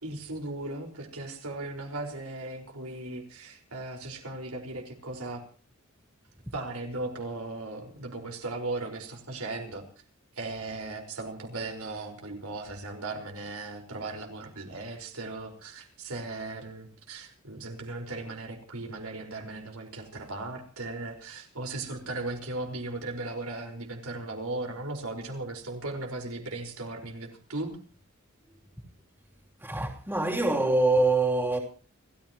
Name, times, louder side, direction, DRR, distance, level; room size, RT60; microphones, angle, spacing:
voice 1, 0.0-5.4 6.5-9.8 10.3-27.8, right 2 dB, 85° right, 4.9 m, -37 dB
voice 2, 29.6-31.6, right 2 dB, 10° right, 3.1 m, -24 dB
29.5 x 14.5 x 3.0 m
head